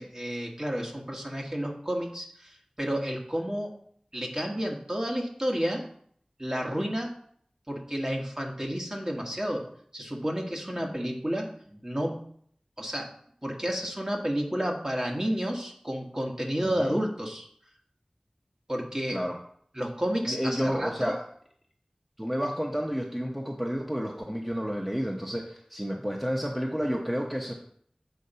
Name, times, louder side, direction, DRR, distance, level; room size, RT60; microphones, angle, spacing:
voice 1, 0.0-3.7 4.1-5.8 6.4-7.1 7.7-9.6 9.9-11.5 11.8-12.2 12.8-13.1 13.4-17.4 18.7-19.2 19.7-21.1, equal, 30° right, 0 dB, 1.6 m, -31 dB
voice 2, 16.6-17.0 19.1-19.4 20.3-21.2 22.2-27.5, equal, 5° right, 0 dB, 0.9 m, -31 dB
8.2 x 3.9 x 5.6 m, 0.63 s
wide cardioid pair, 45°, 2 cm